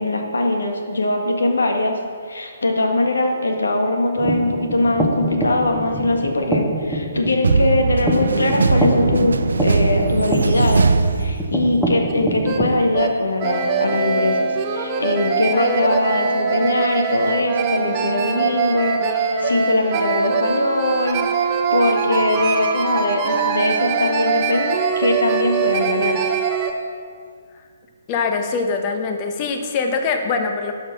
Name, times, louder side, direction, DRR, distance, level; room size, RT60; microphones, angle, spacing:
voice 1, 0.0-2.0 2.3-10.9 11.2-26.2, left 2 dB, 70° left, 3 dB, 1.6 m, -21 dB
sound 1, 4.2-12.8, right 1 dB, ahead, 1.1 m, -25 dB
sound 2, 7.4-11.9, right 4 dB, 70° right, 0.5 m, -20 dB
sound 3, 12.1-12.2 12.4-12.6 12.9-13.1 13.4-26.7, right 5 dB, 30° right, 1.0 m, -22 dB
voice 2, 28.1-30.7, left 4 dB, 30° left, 5 dB, 1.1 m, -23 dB
11.5 x 5.9 x 6.0 m, 2.1 s
figure-of-eight pair, 130°, 0 cm